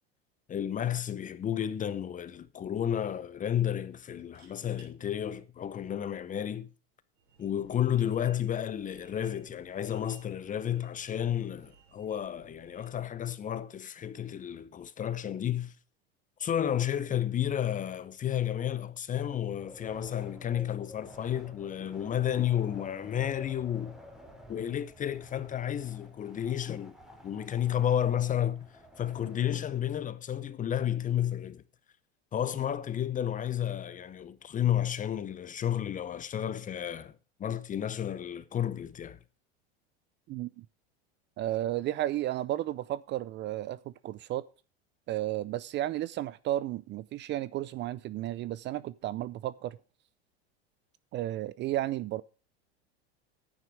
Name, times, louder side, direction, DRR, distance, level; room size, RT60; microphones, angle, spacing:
voice 1, 0.5-6.7 7.4-15.7 16.4-24.0 24.5-27.0 27.2-28.7 29.0-31.6 32.3-37.1 37.4-39.2, left 10 dB, 25° left, 0.8 m, -32 dB
sound 1, 4.1-4.9 6.7-7.0, right 5 dB, 70° right, 6.5 m, -61 dB
sound 2, 7.2-13.1, right 8 dB, 85° right, 5.9 m, -61 dB
Wind, 19.5-29.9, left 1 dB, ahead, 2.7 m, -52 dB
voice 2, 40.3-40.7 41.4-44.4 45.1-49.8 51.1-52.2, right 14 dB, 35° right, 0.5 m, -33 dB
11.0 x 9.2 x 4.8 m
supercardioid pair, 110°, 32 cm